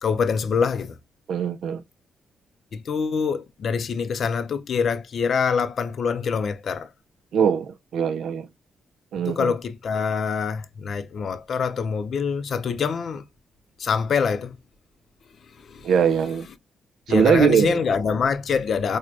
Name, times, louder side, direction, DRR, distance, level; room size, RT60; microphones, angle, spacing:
voice 1, 0.0-0.9 2.7-6.9 9.3-13.2 13.8-14.6 15.6-15.9 17.1-19.0, left 6 dB, 60° left, 0.4 m, -25 dB
voice 2, 1.3-1.8 7.3-8.5 9.1-9.5 15.8-16.5 17.1-17.8, right 7 dB, 75° right, 0.4 m, -21 dB
4.5 x 2.1 x 2.5 m
cardioid pair, 90°, 0 cm